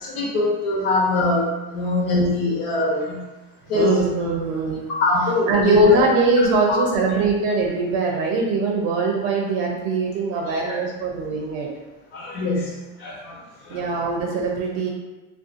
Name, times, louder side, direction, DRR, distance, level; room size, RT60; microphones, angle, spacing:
voice 1, 0.0-3.2 3.7-4.1 5.0-6.0 6.7-6.8 10.5-10.7 12.1-13.8, left 2 dB, 65° left, -4 dB, 1.0 m, -23 dB
voice 2, 3.7-4.8 5.5-11.7 13.7-14.9, right 3 dB, 65° right, -1 dB, 0.6 m, -22 dB
2.6 x 2.3 x 2.4 m, 1.1 s
supercardioid pair, 120°, 39 cm